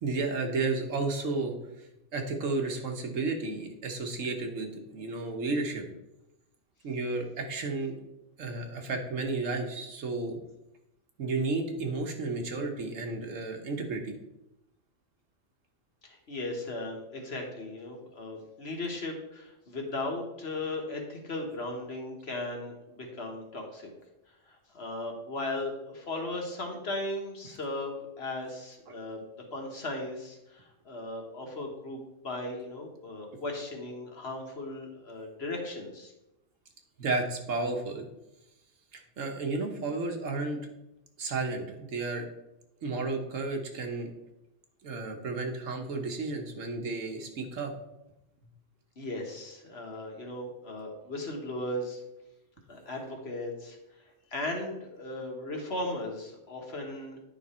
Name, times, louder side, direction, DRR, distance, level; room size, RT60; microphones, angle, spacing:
voice 1, 0.0-5.8 6.8-8.0 8.4-10.4 11.2-14.1 37.0-38.1 38.9-40.6 41.2-42.2 42.8-44.1 44.8-47.7, right 3 dB, 85° right, 3 dB, 1.5 m, -32 dB
voice 2, 16.0-23.9 24.7-36.1 49.0-52.0 52.7-53.8 54.3-57.3, left 2 dB, 55° left, 1 dB, 1.6 m, -37 dB
9.6 x 5.2 x 4.3 m, 0.91 s
omnidirectional pair, 1.3 m